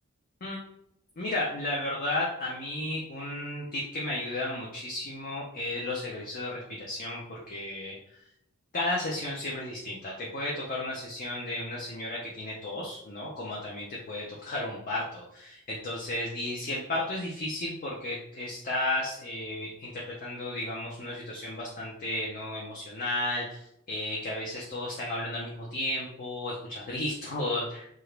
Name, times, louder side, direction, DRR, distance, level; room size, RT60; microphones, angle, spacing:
voice 1, 1.2-8.0 8.7-27.9, left 1 dB, 40° left, -4 dB, 0.5 m, -33 dB
2.8 x 2.4 x 3.1 m, 0.76 s
head